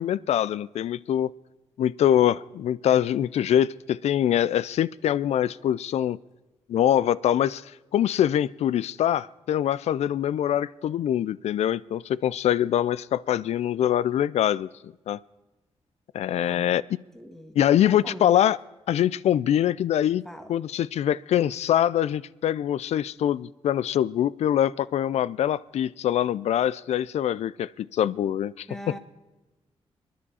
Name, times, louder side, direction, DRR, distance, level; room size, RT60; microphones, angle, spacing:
voice 1, 0.0-1.3 1.8-6.2 6.7-15.2 16.1-16.8 17.6-18.6 18.9-20.2 20.5-28.7, left 11 dB, 75° left, 21 dB, 0.4 m, -24 dB
voice 2, 16.4-16.7 17.1-18.3 20.3-20.5 28.7-29.0, left 1 dB, 5° left, 6 dB, 1.6 m, -41 dB
25.5 x 10.0 x 4.2 m, 1.1 s
cardioid pair, 80°, 11 cm